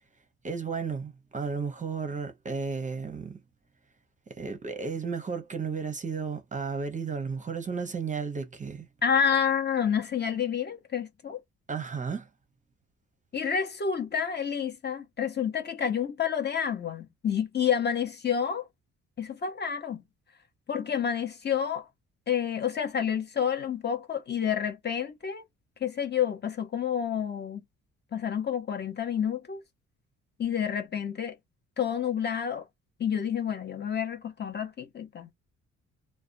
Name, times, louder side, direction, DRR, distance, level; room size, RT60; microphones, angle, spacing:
voice 1, 0.4-3.4 4.3-8.9 11.7-12.3, right 5 dB, 25° right, 0.6 m, -33 dB
voice 2, 9.0-11.4 13.3-18.6 19.2-20.0 20.7-21.9 22.3-25.4 25.8-27.6 28.1-29.6 30.4-31.4 31.8-32.6 33.0-35.3, left 8 dB, 35° left, 0.7 m, -29 dB
2.4 x 2.1 x 2.5 m
cardioid pair, 90°, 30 cm